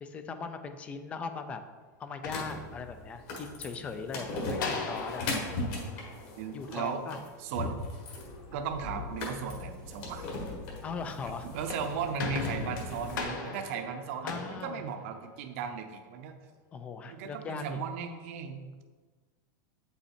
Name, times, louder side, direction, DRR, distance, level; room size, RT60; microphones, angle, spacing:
voice 1, 0.0-1.6 2.0-5.3 6.5-7.2 10.8-11.5 14.2-14.8 16.7-17.8, left 5 dB, 10° left, 9 dB, 0.3 m, -39 dB
sound 1, 2.0-3.2 4.5-7.0 11.4-15.5, left 4 dB, 90° left, 1.3 m, -39 dB
sound 2, 2.2-13.2, left 2 dB, 35° left, 1.5 m, -39 dB
voice 2, 6.4-7.0 7.4-7.7 8.5-10.2 11.4-16.3 17.1-18.8, right 7 dB, 45° right, 5 dB, 0.7 m, -36 dB
8.0 x 5.6 x 4.3 m, 1.4 s
supercardioid pair, 180°, 10 cm